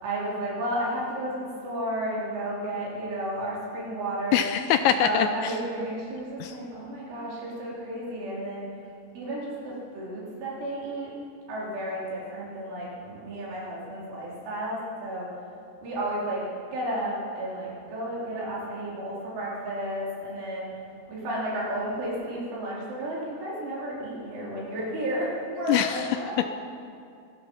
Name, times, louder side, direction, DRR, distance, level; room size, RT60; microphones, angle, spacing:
voice 1, 0.0-4.5 5.0-8.7 9.1-11.1 11.5-15.3 15.8-16.5 16.7-20.7 21.1-26.5, right 1 dB, 70° right, -6 dB, 6.7 m, -32 dB
voice 2, 4.3-5.3 6.4-6.5 25.7-26.0, left 10 dB, 85° left, 8 dB, 2.7 m, -22 dB
25.5 x 19.0 x 5.7 m, 2.4 s
omnidirectional pair, 5.7 m